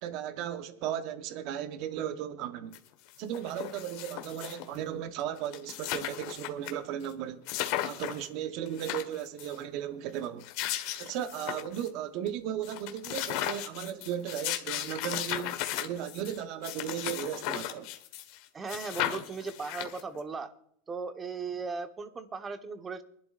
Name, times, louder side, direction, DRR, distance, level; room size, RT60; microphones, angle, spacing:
voice 1, 0.0-2.8 3.2-7.4 7.8-10.4 11.0-17.9, right 10 dB, 55° right, 1.0 m, -36 dB
sound 1, 2.7-2.8 3.1-4.8 5.2-5.3 5.5-6.7 7.0-7.1 7.5-8.3 8.7-9.6 10.2-11.9 12.3-12.4 12.6-18.4 18.7-20.2, left 13 dB, 60° left, 1.4 m, -36 dB
voice 2, 18.5-20.5 20.9-23.0, right 4 dB, 20° right, 1.1 m, -37 dB
23.0 x 11.5 x 2.5 m
supercardioid pair, 125°, 0 cm